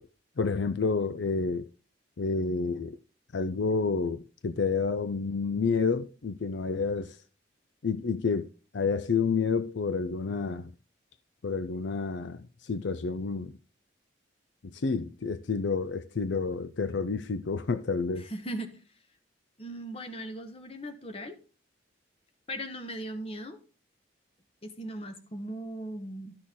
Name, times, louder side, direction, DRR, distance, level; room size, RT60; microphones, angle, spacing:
voice 1, 0.4-1.7 2.2-3.0 3.3-7.2 7.8-8.5 8.7-10.7 11.4-13.5 14.6-18.3, left 4 dB, 70° left, 0.5 m, -29 dB
voice 2, 18.2-18.8 19.6-21.4 22.5-23.6 24.6-26.4, right 1 dB, 30° left, 1.2 m, -38 dB
12.5 x 6.3 x 3.7 m
head